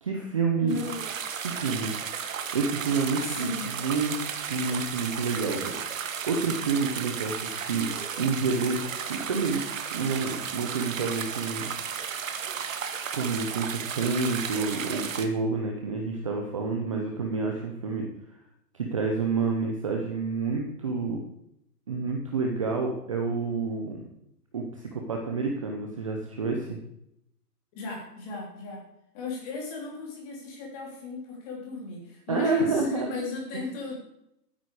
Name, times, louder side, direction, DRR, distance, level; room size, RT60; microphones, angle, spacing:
voice 1, 0.0-0.8 1.4-1.9 2.5-4.1 4.5-7.9 8.2-9.6 9.9-11.7 12.8-18.1 18.7-21.2 21.9-24.0 24.5-26.8 32.3-33.2, right 4 dB, 20° right, 1 dB, 0.7 m, -29 dB
voice 2, 0.6-1.0 3.2-3.8 27.7-28.8 29.1-34.0, left 4 dB, 20° left, -1 dB, 3.3 m, -35 dB
sound 1, 0.7-15.3, right 7 dB, 50° right, 1.4 m, -34 dB
12.5 x 9.3 x 4.8 m, 0.78 s
hypercardioid pair, 170°, 49 cm